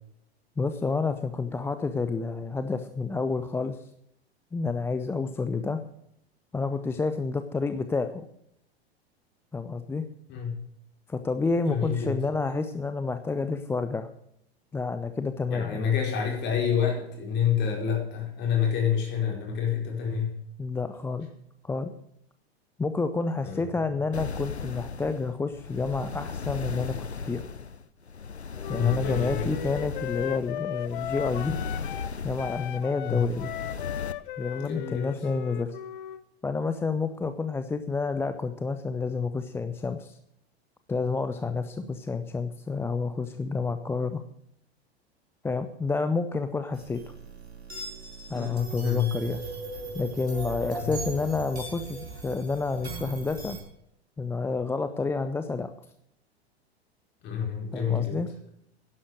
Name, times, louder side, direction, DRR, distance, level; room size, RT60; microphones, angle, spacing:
voice 1, 0.6-3.9 4.5-5.8 6.5-8.3 9.5-10.0 11.1-14.1 14.7-15.9 20.6-21.3 21.6-21.9 22.8-27.5 28.7-31.6 32.2-33.5 34.4-35.8 36.4-40.2 40.9-44.2 45.4-47.0 48.3-49.4 49.9-53.6 54.2-55.7 57.7-58.3, left 4 dB, 5° left, 10 dB, 0.5 m, -29 dB
voice 2, 11.7-12.2 15.5-20.3 23.4-23.7 28.7-29.5 33.0-33.3 34.5-35.1 48.3-49.1 50.7-50.9 57.2-58.2, left 8 dB, 35° left, 1 dB, 4.7 m, -28 dB
sound 1, 24.1-34.1, left 5 dB, 90° left, 0.6 m, -36 dB
Wind instrument woodwind instrument, 28.6-32.1 32.4-36.2, left 13 dB, 55° left, 0.9 m, -37 dB
sound 2, 46.7-53.6, right 4 dB, 80° right, 5.3 m, -38 dB
11.5 x 11.0 x 6.5 m, 0.75 s
figure-of-eight pair, 95°, 32 cm